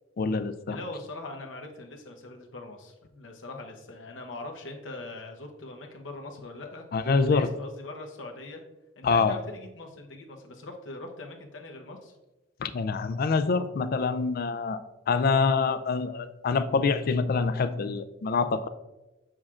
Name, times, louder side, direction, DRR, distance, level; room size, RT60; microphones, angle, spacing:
voice 1, 0.2-0.8 6.9-7.5 9.0-9.4 12.6-14.8 15.1-18.7, left 4 dB, 50° left, 12 dB, 0.4 m, -25 dB
voice 2, 0.7-8.6 9.0-12.2, left 2 dB, 85° left, 3 dB, 0.9 m, -42 dB
7.4 x 6.3 x 2.4 m, 1.0 s
head